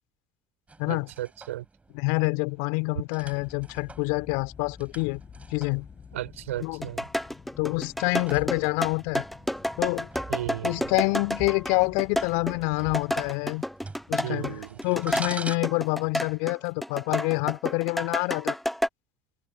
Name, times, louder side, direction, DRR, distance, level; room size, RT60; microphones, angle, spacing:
sound 1, 0.7-15.6, right 3 dB, 20° right, 4.7 m, -45 dB
voice 1, 0.9-1.6 6.1-7.0 10.3-10.9 14.2-14.8, right 14 dB, 75° right, 4.8 m, -35 dB
voice 2, 1.9-5.2 5.5-5.9 6.6-6.9 7.6-9.3 9.8-10.1 10.6-13.6 14.1-14.5 14.8-18.6, left 32 dB, 65° left, 2.5 m, -27 dB
sound 2, 3.2-13.3, left 6 dB, 35° left, 7.1 m, -49 dB
sound 3, 6.6-16.6 16.8-18.9, equal, ahead, 0.6 m, -30 dB
figure-of-eight pair, 60°, 7 cm